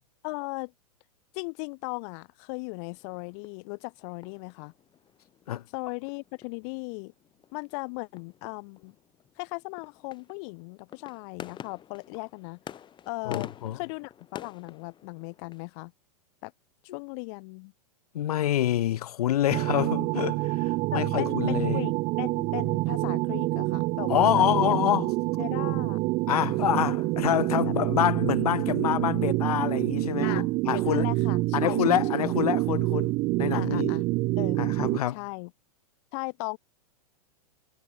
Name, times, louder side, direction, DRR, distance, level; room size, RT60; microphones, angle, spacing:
voice 1, 0.2-0.7 1.3-4.7 5.7-7.1 7.5-8.9 9.4-12.6 13.1-15.9 16.4-16.5 16.9-17.7 19.7-19.9 20.9-24.8 25.4-26.0 27.6-27.7 30.2-32.3 33.5-34.0 34.4-34.6 35.1-35.5 36.1-36.6, left 34 dB, 50° left, 2.9 m, -37 dB
sound 1, 2.8-15.7, left 9 dB, 25° left, 2.9 m, -48 dB
voice 2, 13.3-13.8 18.1-21.8 24.1-25.1 26.3-31.1 31.5-33.9 34.6-35.2, left 12 dB, 70° left, 2.0 m, -27 dB
sound 2, 19.5-35.0, right 21 dB, 40° right, 1.9 m, -27 dB
hypercardioid pair, 120°, 20 cm